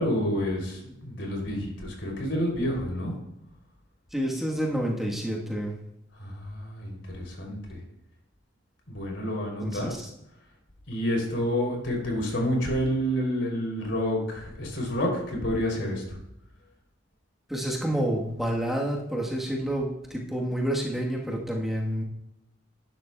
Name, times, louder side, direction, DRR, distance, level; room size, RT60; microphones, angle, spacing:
voice 1, 0.0-3.1 6.1-7.8 8.9-9.9 10.9-16.2, equal, 80° left, 0 dB, 2.8 m, -29 dB
voice 2, 4.1-5.8 9.6-10.1 17.5-22.0, right 1 dB, ahead, -2 dB, 1.1 m, -29 dB
11.5 x 10.5 x 2.2 m, 0.83 s
head